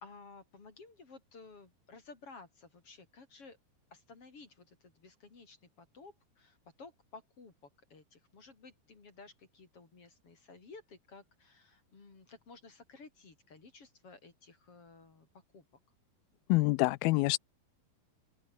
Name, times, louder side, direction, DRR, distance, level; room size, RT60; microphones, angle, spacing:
voice 1, 0.0-3.6 3.9-15.6, left 4 dB, 35° left, 4.7 m, -55 dB
voice 2, 16.5-17.4, left 22 dB, 80° left, 2.3 m, -26 dB
open air
omnidirectional pair, 4.5 m